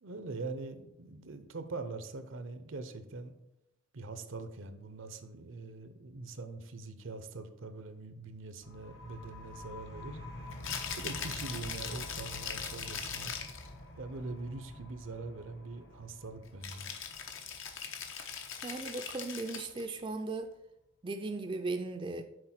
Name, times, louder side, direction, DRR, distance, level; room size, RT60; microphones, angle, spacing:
voice 1, 0.0-3.3 3.9-10.2 11.0-13.3 14.0-16.9, right 3 dB, 75° right, 10 dB, 0.7 m, -43 dB
sound 1, 8.6-20.0, left 1 dB, 55° left, 1.1 m, -48 dB
Rattle (instrument), 10.5-13.7 16.6-19.8, left 7 dB, 75° left, 0.9 m, -40 dB
voice 2, 18.6-20.5 21.0-22.2, right 3 dB, 25° right, 6 dB, 0.4 m, -37 dB
6.6 x 4.2 x 5.9 m, 0.85 s
head